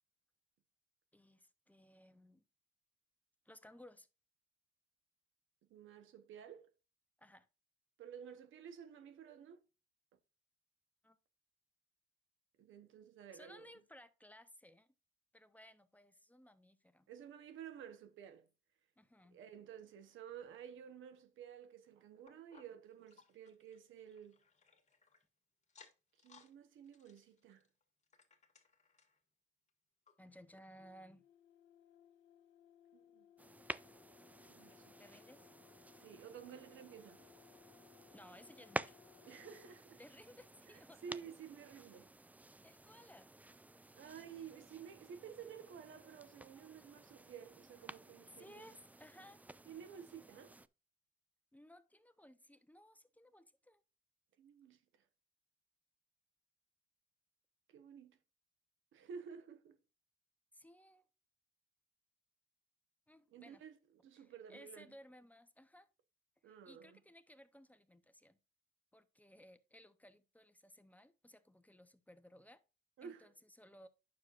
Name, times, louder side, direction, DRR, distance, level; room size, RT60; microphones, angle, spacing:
voice 1, 1.1-2.4 3.4-4.1 7.2-7.5 11.0-11.2 13.3-14.9 15.3-17.1 19.0-19.4 30.2-31.3 35.0-35.5 38.1-39.0 40.0-41.2 42.6-43.3 48.4-49.4 51.5-53.8 60.5-61.0 63.1-63.6 64.1-65.9 66.4-68.4 68.9-72.6 73.0-73.9, equal, 10° left, 0.8 m, -60 dB
voice 2, 5.7-6.7 8.0-9.6 12.6-13.7 17.1-18.5 19.3-24.4 26.2-27.6 32.9-33.3 34.5-35.0 36.0-37.2 39.2-40.0 40.7-42.1 43.9-48.8 49.7-50.6 54.4-55.0 57.7-58.2 58.9-59.8 63.3-64.9 66.4-67.0 73.0-73.3, right 8 dB, 80° right, 1.1 m, -53 dB
sound 1, 22.3-25.2 25.6-26.5 26.8-29.2 29.7-29.8 30.1-30.2 30.8-30.9, left 5 dB, 35° left, 1.9 m, -66 dB
sound 2, 30.8-39.8, left 11 dB, 75° left, 1.5 m, -65 dB
sound 3, 33.4-50.7, right 2 dB, 10° right, 0.3 m, -52 dB
9.5 x 6.5 x 2.5 m
cardioid pair, 90°, 20 cm